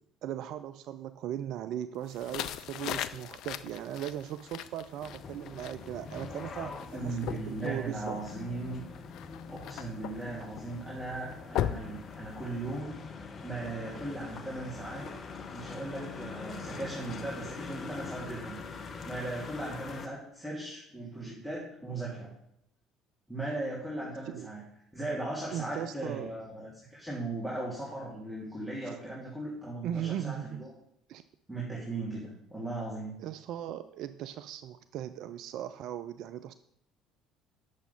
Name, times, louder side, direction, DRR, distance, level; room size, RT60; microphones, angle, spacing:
voice 1, 0.2-8.2 24.3-24.5 25.5-26.3 28.8-29.0 29.8-30.6 31.1-31.2 33.2-36.5, right 11 dB, 60° right, 12 dB, 0.3 m, -38 dB
sound 1, 2.1-12.8, left 11 dB, 60° left, 0.4 m, -40 dB
sound 2, 5.0-20.1, left 4 dB, 40° left, 1.0 m, -44 dB
voice 2, 6.9-8.8 9.5-13.0 13.4-15.1 15.5-18.6 19.0-22.3 23.3-24.6 24.9-30.7 31.5-33.1, right 2 dB, 5° right, -7 dB, 3.0 m, -38 dB
8.4 x 7.0 x 5.5 m, 0.76 s
figure-of-eight pair, 60°, 0 cm